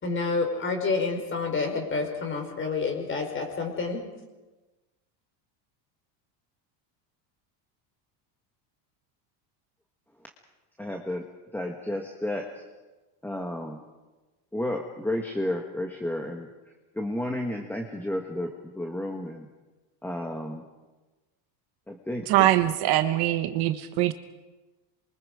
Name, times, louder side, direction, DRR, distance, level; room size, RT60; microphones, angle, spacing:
voice 1, 0.0-4.1, left 4 dB, 25° left, 4 dB, 4.6 m, -28 dB
voice 2, 10.8-11.2 11.5-12.6 13.2-13.8 14.5-16.5 16.9-19.5 20.0-20.6 21.9-22.5, left 1 dB, 5° left, 2 dB, 1.5 m, -32 dB
voice 3, 22.3-24.1, right 14 dB, 50° right, 10 dB, 1.1 m, -23 dB
26.5 x 23.5 x 5.0 m, 1.2 s
cardioid pair, 155°, 50 cm